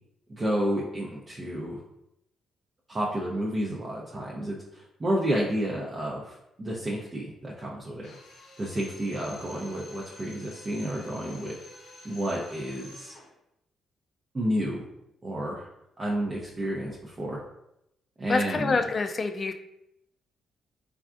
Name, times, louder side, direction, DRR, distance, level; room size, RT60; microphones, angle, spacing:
voice 1, 0.3-1.8 2.9-8.1 8.6-11.6 12.0-13.1 14.3-14.8 15.2-15.7 16.0-17.4 18.2-18.8, right 1 dB, 30° right, -4 dB, 0.5 m, -30 dB
Drill, 8.0-13.3, left 1 dB, 70° left, 0.7 m, -49 dB
voice 2, 18.3-19.5, left 4 dB, 40° left, 7 dB, 0.3 m, -26 dB
3.4 x 2.4 x 2.4 m, 0.82 s
cardioid pair, 75°, 0 cm